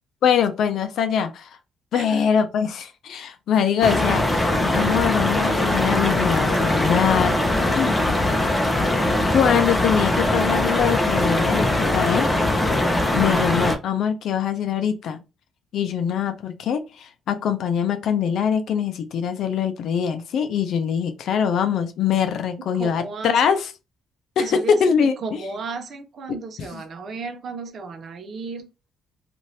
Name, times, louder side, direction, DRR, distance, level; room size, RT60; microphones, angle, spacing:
voice 1, 0.2-1.5 1.9-7.4 7.7-7.9 9.3-12.3 13.1-15.2 15.7-23.7 24.4-25.2 26.3-26.4, left 7 dB, 70° left, 0.5 m, -23 dB
voice 2, 1.9-2.3 22.7-23.6 24.4-28.7, right 4 dB, 55° right, 0.7 m, -34 dB
sound 1, 3.8-13.8, left 1 dB, 15° left, 0.7 m, -21 dB
2.7 x 2.5 x 3.2 m
cardioid pair, 90°, 0 cm